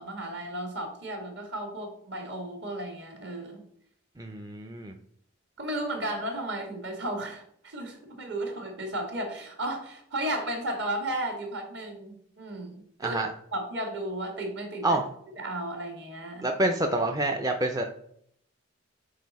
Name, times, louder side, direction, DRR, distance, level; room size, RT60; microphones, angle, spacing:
voice 1, 0.0-3.6 5.6-13.2 13.5-15.0 15.4-16.4, right 1 dB, 55° right, 3 dB, 1.6 m, -34 dB
voice 2, 4.2-4.9 13.0-13.3 14.8-15.0 16.4-17.8, right 2 dB, 20° right, 3 dB, 0.4 m, -27 dB
6.6 x 4.1 x 4.0 m, 0.67 s
head